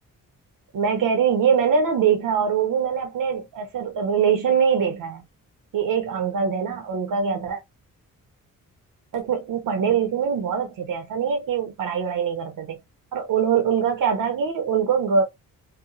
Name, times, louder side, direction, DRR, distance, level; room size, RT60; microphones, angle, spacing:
voice 1, 0.7-5.2 5.7-7.6 9.1-12.8 13.1-15.2, right 7 dB, 70° right, 0.7 m, -23 dB
2.9 x 2.1 x 2.5 m
cardioid pair, 90°, 34 cm